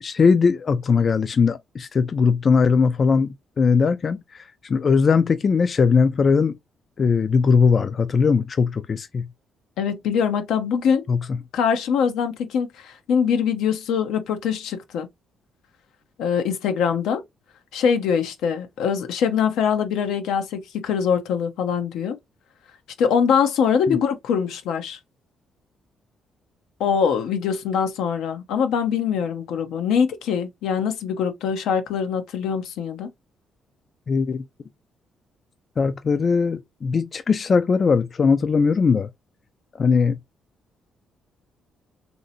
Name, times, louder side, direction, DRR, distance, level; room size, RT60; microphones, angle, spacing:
voice 1, 0.0-6.5 7.0-9.2 11.1-11.2 23.9-24.0 34.1-34.4 35.8-39.1 39.8-40.2, left 5 dB, 45° left, 0.3 m, -20 dB
voice 2, 9.8-11.0 11.5-15.1 16.2-17.2 17.7-22.2 23.0-25.0 26.8-33.1, left 7 dB, 85° left, 0.6 m, -23 dB
3.2 x 2.7 x 2.7 m
cardioid pair, 90°, 0 cm